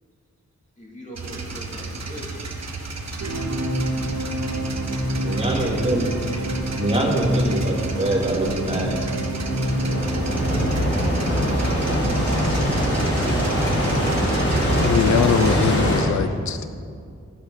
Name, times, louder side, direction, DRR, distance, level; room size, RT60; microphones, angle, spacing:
voice 1, 0.8-2.4 5.3-6.1, equal, 25° left, -5 dB, 3.0 m, -40 dB
sound 1, 1.1-15.7, right 3 dB, 60° right, 1.4 m, -33 dB
sound 2, 3.2-11.6, right 1 dB, 85° right, 2.3 m, -28 dB
voice 2, 5.2-6.1 6.8-9.1, right 1 dB, 20° right, -3 dB, 2.7 m, -23 dB
sound 3, 9.2-16.0, equal, 50° left, 4.0 m, -22 dB
voice 3, 14.8-16.7, left 7 dB, 70° left, 10 dB, 0.6 m, -22 dB
14.5 x 8.8 x 6.6 m, 2.3 s
wide cardioid pair, 105°, 29 cm